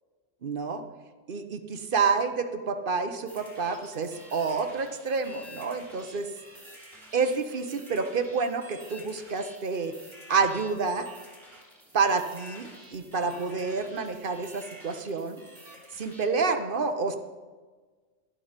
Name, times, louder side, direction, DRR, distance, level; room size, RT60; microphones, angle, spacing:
voice 1, 0.4-0.8 1.3-6.3 7.1-10.0 10.3-11.1 11.9-15.4 15.9-17.2, right 4 dB, 50° right, 8 dB, 1.0 m, -28 dB
sound 1, 3.3-16.2, equal, 20° right, 3.2 m, -49 dB
11.5 x 11.5 x 5.1 m, 1.4 s
omnidirectional pair, 1.3 m